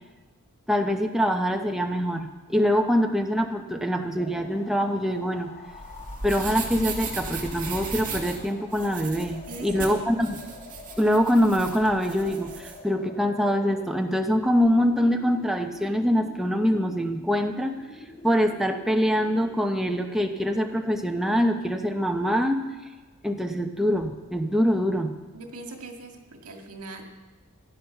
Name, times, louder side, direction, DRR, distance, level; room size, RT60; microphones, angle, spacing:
voice 1, 0.7-5.5 6.2-10.4 11.0-17.8 18.2-22.6 23.2-25.1, equal, ahead, 3 dB, 0.8 m, -24 dB
sound 1, 4.2-22.7, left 2 dB, 30° left, 1.4 m, -47 dB
sound 2, 5.7-12.8, right 4 dB, 40° right, 2.1 m, -37 dB
voice 2, 9.5-9.9 25.3-27.0, right 2 dB, 75° right, 3 dB, 1.9 m, -40 dB
16.5 x 10.5 x 5.8 m, 1.2 s
head